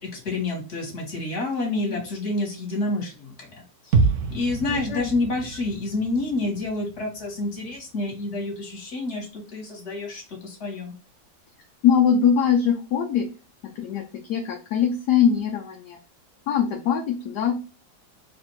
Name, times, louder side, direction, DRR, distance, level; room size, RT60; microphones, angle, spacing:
voice 1, 0.0-4.0 4.3-10.9, left 2 dB, 40° left, -1 dB, 1.6 m, -29 dB
sound 1, 3.9-7.9 8.2-8.3, right 4 dB, 85° right, 0.6 m, -27 dB
voice 2, 4.7-5.1 11.8-13.3 13.8-14.0 14.3-16.0 16.5-17.6, left 8 dB, 70° left, 1 dB, 1.1 m, -22 dB
3.4 x 2.5 x 4.4 m, 0.33 s
omnidirectional pair, 2.1 m